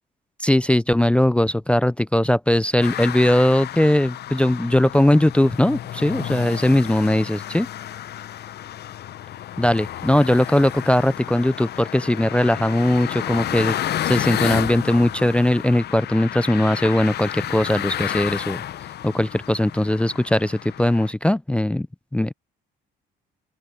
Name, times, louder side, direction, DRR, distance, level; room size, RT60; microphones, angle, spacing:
voice 1, 0.4-7.7 9.6-18.6 19.0-21.9 22.1-22.3, left 1 dB, 5° left, 0.4 m, -19 dB
sound 1, 2.8-21.1, left 12 dB, 55° left, 0.8 m, -31 dB
open air
supercardioid pair, 85°, 20 cm